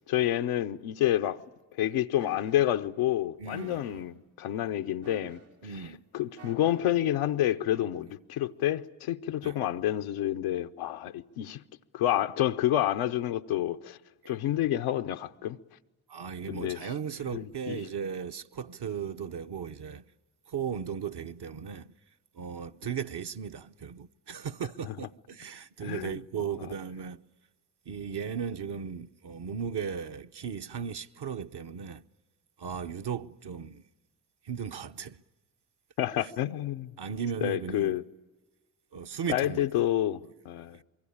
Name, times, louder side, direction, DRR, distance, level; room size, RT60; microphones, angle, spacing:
voice 1, 0.1-1.4 1.8-5.4 6.1-11.6 11.9-14.0 14.3-15.6 16.5-16.8 17.3-17.8 24.8-24.9 25.8-26.2 36.0-36.9 37.4-38.0 39.3-40.8, left 12 dB, 90° left, 0.8 m, -29 dB
sound 1, 2.2-2.6 3.5-4.0 5.0-5.6 6.4-6.9 7.7-7.9, right 5 dB, 85° right, 3.1 m, -50 dB
voice 2, 3.4-4.0 5.6-6.0 9.4-9.6 14.2-14.3 16.1-20.0 20.5-21.9 22.3-27.2 27.9-32.0 32.6-33.8 34.4-35.2 36.2-36.3 37.0-38.0 38.9-39.9 40.7-40.8, right 7 dB, 55° right, 1.0 m, -36 dB
24.5 x 23.5 x 8.6 m
supercardioid pair, 45°, 48 cm